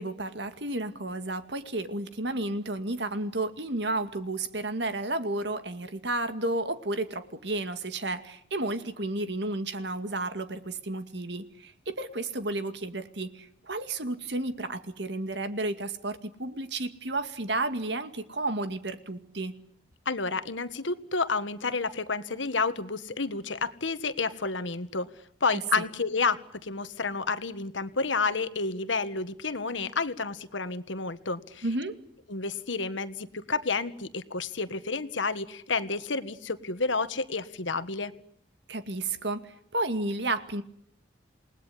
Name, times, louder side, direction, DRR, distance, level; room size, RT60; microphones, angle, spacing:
voice 1, 0.0-19.5 25.5-25.9 31.6-31.9 38.7-40.6, right 2 dB, 70° right, 10 dB, 2.2 m, -32 dB
voice 2, 20.0-25.1 25.4-31.6 32.3-38.1, left 4 dB, 85° left, 12 dB, 1.6 m, -30 dB
28.5 x 19.5 x 9.8 m, 0.68 s
head